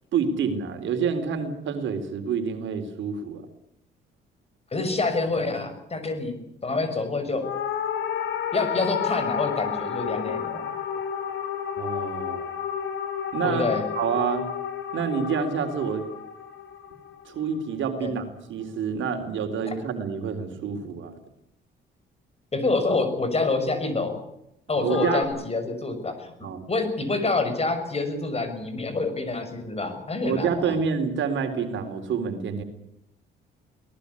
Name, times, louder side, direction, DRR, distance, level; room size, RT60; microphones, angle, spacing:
voice 1, 0.1-3.4 11.8-12.5 13.3-13.7 14.0-14.4 14.9-16.1 17.3-18.2 18.5-21.1 24.7-25.2 26.4-26.7 30.2-32.6, right 6 dB, 75° right, 7 dB, 3.9 m, -27 dB
voice 2, 4.7-6.4 6.6-7.5 8.5-10.7 13.4-13.8 18.0-18.1 19.6-19.7 22.5-24.2 24.7-26.3 26.7-30.8, left 3 dB, 30° left, 9 dB, 6.3 m, -27 dB
sound 1, 7.4-17.9 24.9-25.2, left 8 dB, 75° left, 3.6 m, -31 dB
23.5 x 19.0 x 8.5 m, 0.79 s
cardioid pair, 90°, 20 cm